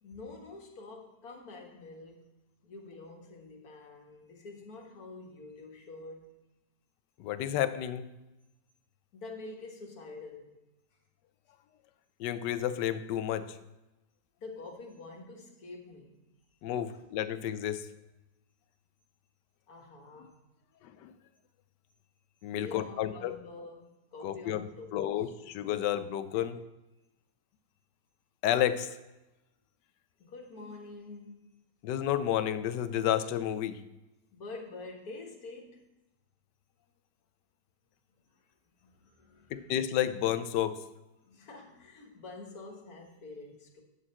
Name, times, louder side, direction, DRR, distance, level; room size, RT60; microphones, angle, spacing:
voice 1, 0.0-2.3 2.6-6.3 9.1-10.6 14.4-16.2 16.9-17.0 19.7-20.4 22.5-25.3 25.8-25.9 26.3-26.4 30.2-31.5 34.3-35.9 38.3-38.4 38.8-39.7 41.2-43.8, left 3 dB, 60° left, 1 dB, 1.8 m, -47 dB
voice 2, 7.2-8.0 12.2-13.6 16.6-17.9 20.8-21.1 22.4-23.4 24.2-26.6 28.4-29.0 31.8-33.8 39.5-40.8, left 11 dB, 85° left, 12 dB, 1.2 m, -31 dB
8.7 x 6.7 x 4.2 m, 1.0 s
omnidirectional pair, 1.8 m